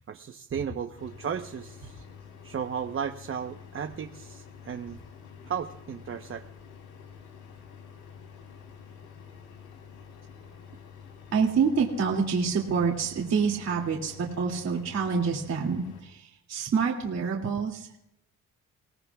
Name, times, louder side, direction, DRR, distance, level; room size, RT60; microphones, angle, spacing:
voice 1, 0.1-2.0 2.4-5.0 5.5-6.4, right 7 dB, 45° right, 5 dB, 1.0 m, -35 dB
sound 1, 1.0-16.0, left 6 dB, 85° left, 3.5 m, -48 dB
voice 2, 11.3-17.9, right 5 dB, 60° right, -2 dB, 2.6 m, -27 dB
30.0 x 18.0 x 2.4 m, 0.79 s
cardioid pair, 90°, 30 cm